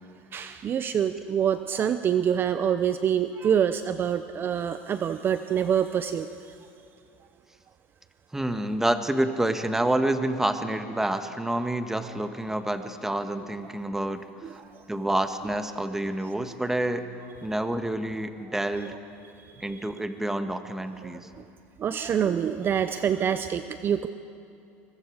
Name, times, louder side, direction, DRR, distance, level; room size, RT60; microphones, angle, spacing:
voice 1, 0.3-6.3 14.4-14.6 18.8-19.0 19.7-19.8 21.0-21.1 21.8-24.1, right 8 dB, 35° right, 11 dB, 0.7 m, -26 dB
voice 2, 8.3-14.3 14.9-17.0 17.4-19.0 19.6-21.3, right 1 dB, 5° right, 8 dB, 1.4 m, -28 dB
25.5 x 23.0 x 4.9 m, 2.6 s
supercardioid pair, 105°, 6 cm